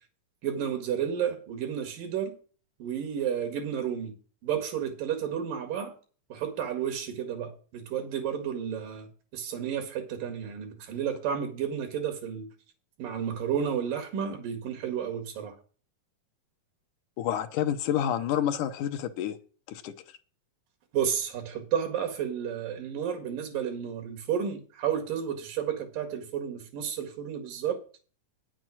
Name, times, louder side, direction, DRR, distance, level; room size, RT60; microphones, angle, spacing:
voice 1, 0.4-2.3 2.8-4.1 4.4-6.0 6.3-12.5 13.0-15.6 20.9-27.8, right 8 dB, 85° right, 3.6 m, -32 dB
voice 2, 17.2-19.4 19.7-19.9, left 10 dB, 75° left, 2.3 m, -28 dB
9.8 x 7.8 x 6.0 m
omnidirectional pair, 3.8 m